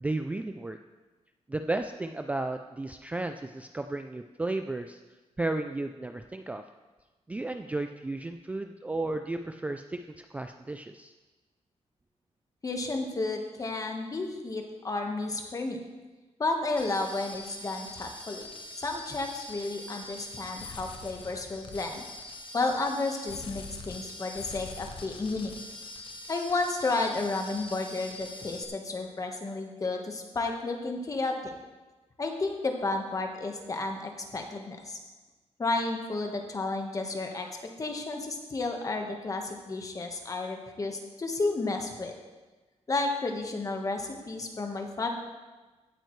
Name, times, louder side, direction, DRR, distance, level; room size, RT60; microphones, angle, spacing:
voice 1, 0.0-0.8 1.5-5.0 5.4-6.6 7.3-11.1, right 2 dB, 10° right, 7 dB, 0.3 m, -33 dB
voice 2, 12.6-15.8 16.4-18.5 18.8-22.0 22.5-25.5 26.3-31.4 32.2-35.0 35.6-37.5 37.8-42.1 42.9-45.1, left 3 dB, 30° left, 3 dB, 1.3 m, -32 dB
sound 1, 16.8-28.6, left 2 dB, 45° left, 1.0 m, -43 dB
16.0 x 8.8 x 3.2 m, 1.2 s
wide cardioid pair, 140°, 12 cm